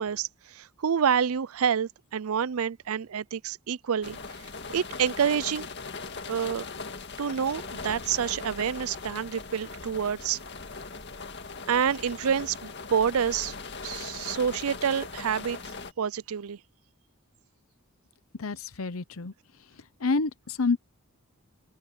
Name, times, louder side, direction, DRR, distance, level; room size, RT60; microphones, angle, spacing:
voice 1, 0.0-5.7 6.3-6.7 7.2-10.4 11.7-13.5 13.8-15.6 16.0-16.6, right 7 dB, 75° right, 0.5 m, -28 dB
sound 1, 4.0-15.9, left 4 dB, 50° left, 2.1 m, -40 dB
voice 2, 18.4-19.3 20.0-20.8, left 3 dB, 70° left, 0.8 m, -28 dB
open air
head